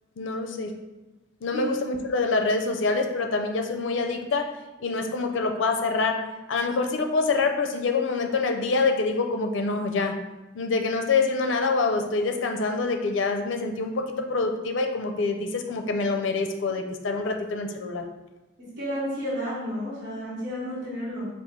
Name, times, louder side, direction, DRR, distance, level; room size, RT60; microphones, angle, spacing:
voice 1, 0.2-0.7 1.4-4.5 4.8-10.2 10.5-18.0, left 3 dB, 75° left, 4 dB, 0.5 m, -26 dB
voice 2, 18.6-21.3, equal, 60° right, -7 dB, 1.3 m, -32 dB
4.5 x 2.4 x 3.7 m, 1.1 s
head